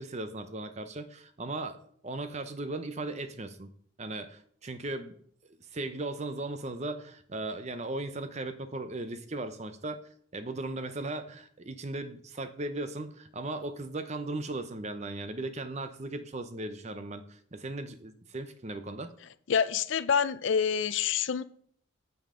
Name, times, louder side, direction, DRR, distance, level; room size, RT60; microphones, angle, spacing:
voice 1, 0.0-1.8 2.0-3.7 4.0-5.1 5.7-10.0 10.3-19.1, right 2 dB, 30° right, 0.7 m, -37 dB
voice 2, 19.5-21.4, left 7 dB, 60° left, 0.4 m, -27 dB
9.0 x 7.1 x 3.8 m
head